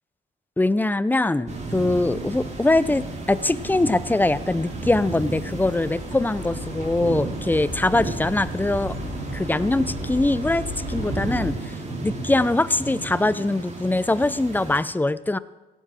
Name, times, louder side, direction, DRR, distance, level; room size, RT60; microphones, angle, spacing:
voice 1, 0.6-9.0 9.3-11.7 12.0-15.4, left 2 dB, 10° left, 16 dB, 0.6 m, -22 dB
sound 1, 1.5-14.8, right 3 dB, 35° right, 2.9 m, -34 dB
sound 2, 1.5-11.5, equal, 50° right, 6.6 m, -35 dB
17.0 x 15.0 x 4.5 m, 1.1 s
cardioid pair, 90°, 20 cm